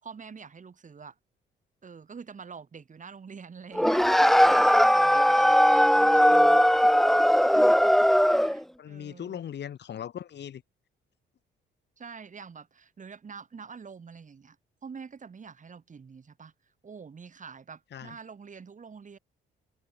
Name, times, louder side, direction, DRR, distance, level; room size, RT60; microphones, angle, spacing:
voice 1, 0.0-1.2 1.8-6.9 7.4-8.1 8.4-9.4 12.0-14.6 14.8-16.5 16.8-19.2, right 5 dB, 40° right, 6.9 m, -46 dB
sound 1, 3.7-8.6, equal, ahead, 1.5 m, -19 dB
voice 2, 8.8-10.6 17.9-18.2, left 9 dB, 60° left, 3.0 m, -39 dB
cardioid pair, 90°, 20 cm